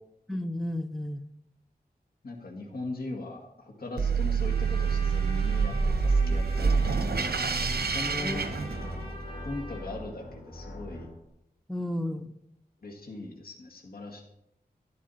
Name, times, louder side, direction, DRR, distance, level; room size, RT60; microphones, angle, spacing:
voice 1, 0.3-1.3 8.2-8.4 11.7-12.4, left 1 dB, ahead, 7 dB, 0.8 m, -33 dB
voice 2, 2.2-7.7 7.9-8.4 9.4-11.1 12.8-14.2, left 2 dB, 65° left, -1 dB, 2.0 m, -39 dB
sound 1, 4.0-9.3, right 5 dB, 75° right, 1.0 m, -27 dB
Trumpet, 4.4-9.9, right 1 dB, 30° left, 3.9 m, -45 dB
sound 2, 5.9-11.2, equal, 85° left, 3.4 m, -41 dB
11.5 x 11.0 x 4.2 m, 0.81 s
wide cardioid pair, 75°, 16 cm